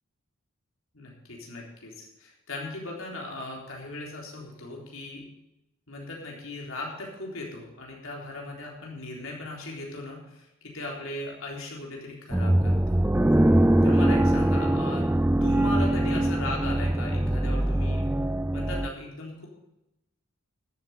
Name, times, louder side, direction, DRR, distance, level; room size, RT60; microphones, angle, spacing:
voice 1, 0.9-5.2 5.9-13.0 13.8-15.1 15.4-18.1 18.5-19.5, left 2 dB, 70° left, -1 dB, 3.8 m, -38 dB
sound 1, 12.3-18.9, right 1 dB, 10° right, 0.4 m, -22 dB
13.0 x 7.7 x 7.0 m, 0.89 s
head